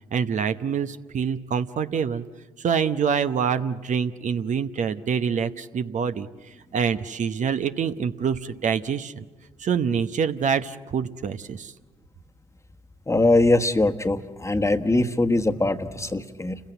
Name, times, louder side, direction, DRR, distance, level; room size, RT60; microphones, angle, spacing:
voice 1, 0.1-2.2 2.6-9.2 9.6-11.7, right 7 dB, 55° right, 9 dB, 0.9 m, -26 dB
voice 2, 13.1-16.6, left 2 dB, 20° left, 7 dB, 1.4 m, -22 dB
29.5 x 16.0 x 8.1 m, 1.2 s
hypercardioid pair, 50°, 15 cm